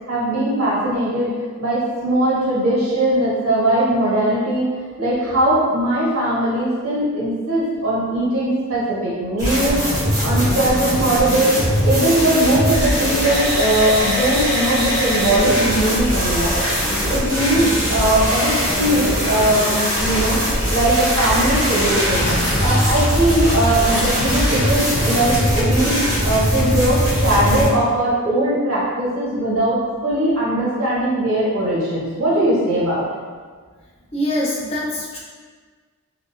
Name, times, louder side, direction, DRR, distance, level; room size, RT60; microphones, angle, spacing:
voice 1, 0.1-1.3 1.6-4.6 5.0-9.8 10.2-11.5 11.8-20.4 20.7-25.9 26.2-33.0, right 1 dB, 90° right, -8 dB, 1.4 m, -20 dB
sound 1, 9.4-27.7, equal, 15° right, 0.9 m, -21 dB
sound 2, 21.1-25.7, equal, 60° left, 1.4 m, -27 dB
voice 2, 34.1-35.2, left 1 dB, 30° left, -5 dB, 0.6 m, -23 dB
3.1 x 2.7 x 2.7 m, 1.5 s
head